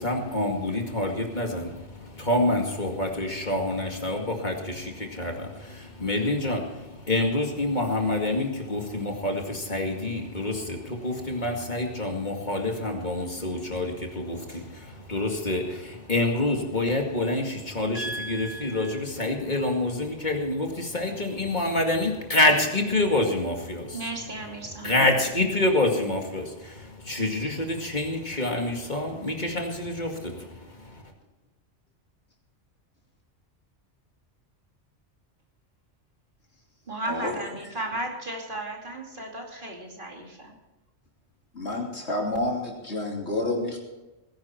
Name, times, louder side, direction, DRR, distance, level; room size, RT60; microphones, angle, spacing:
voice 1, 0.0-24.0 24.8-31.0, left 2 dB, 40° left, 2 dB, 2.4 m, -27 dB
voice 2, 17.9-19.0 23.9-24.9 36.9-40.5, right 1 dB, 45° right, 0 dB, 3.0 m, -35 dB
voice 3, 37.0-37.4 41.5-43.8, left 2 dB, 70° left, 0 dB, 3.4 m, -29 dB
19.5 x 11.0 x 4.5 m, 1.0 s
omnidirectional pair, 1.2 m